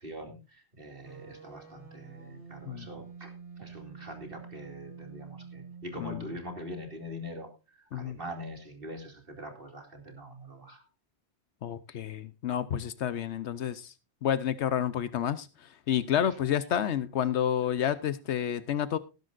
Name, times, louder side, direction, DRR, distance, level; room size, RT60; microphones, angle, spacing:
voice 1, 0.0-10.9 16.2-16.3, equal, 55° right, 4 dB, 2.8 m, -43 dB
sound 1, 1.0-7.1, right 5 dB, 10° right, 7.8 m, -48 dB
voice 2, 11.6-13.9 14.2-19.0, left 9 dB, 85° left, 14 dB, 1.0 m, -30 dB
19.0 x 10.5 x 2.5 m, 0.28 s
omnidirectional pair, 1.1 m